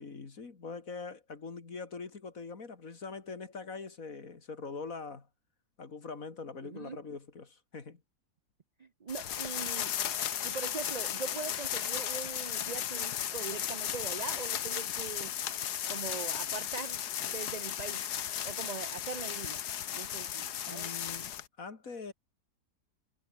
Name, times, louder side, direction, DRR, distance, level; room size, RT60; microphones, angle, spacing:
voice 1, 0.0-5.3 5.8-8.0 20.7-22.1, left 4 dB, 60° left, 2.9 m, -43 dB
voice 2, 6.6-7.0 8.8-9.9 10.4-15.3 15.9-18.1 18.4-19.6 19.9-20.9, right 5 dB, 45° right, 0.5 m, -41 dB
sound 1, 9.1-21.5, left 10 dB, 85° left, 1.7 m, -35 dB
omnidirectional pair, 1.7 m